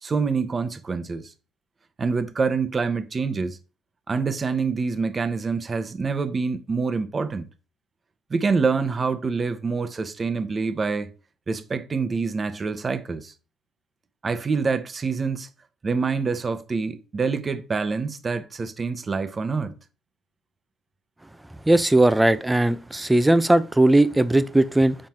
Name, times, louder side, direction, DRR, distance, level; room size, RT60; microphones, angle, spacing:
voice 1, 0.0-1.3 2.0-3.6 4.1-7.5 8.3-11.1 11.5-13.3 14.2-15.5 15.8-19.7, right 4 dB, 30° right, 1.0 m, -26 dB
voice 2, 21.7-25.0, right 1 dB, 10° right, 0.7 m, -18 dB
7.5 x 4.5 x 4.4 m
cardioid pair, 110°, 0 cm